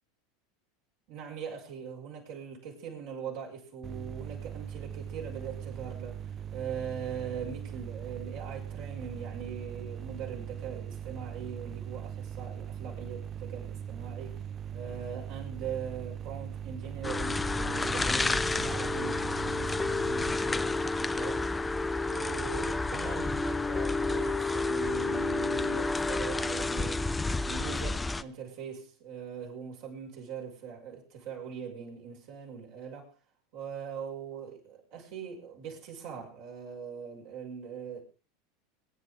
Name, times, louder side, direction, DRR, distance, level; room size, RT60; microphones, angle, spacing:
voice 1, 1.1-14.4 14.7-21.5 22.1-27.1 27.4-33.1 33.5-38.0, right 7 dB, 60° right, 5.8 m, -41 dB
sound 1, 3.8-20.3, right 9 dB, 35° right, 0.7 m, -40 dB
sound 2, 17.0-28.2, left 3 dB, 15° left, 0.7 m, -30 dB
23.5 x 10.0 x 3.7 m
hypercardioid pair, 85°, 0 cm